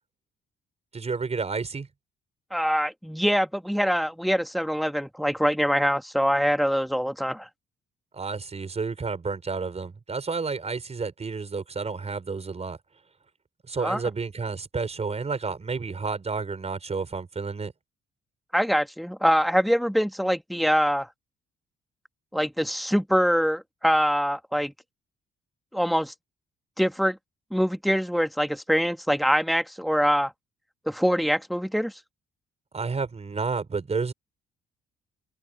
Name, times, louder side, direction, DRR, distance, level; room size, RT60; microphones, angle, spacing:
voice 1, 0.9-1.9 8.1-12.8 13.7-17.7 32.7-34.1, right 4 dB, 30° right, 5.4 m, -30 dB
voice 2, 2.5-7.5 13.8-14.0 18.5-21.1 22.3-24.7 25.7-26.1 26.8-27.2 27.5-30.3 30.8-31.9, equal, ahead, 1.8 m, -24 dB
cardioid pair, 90°, 20 cm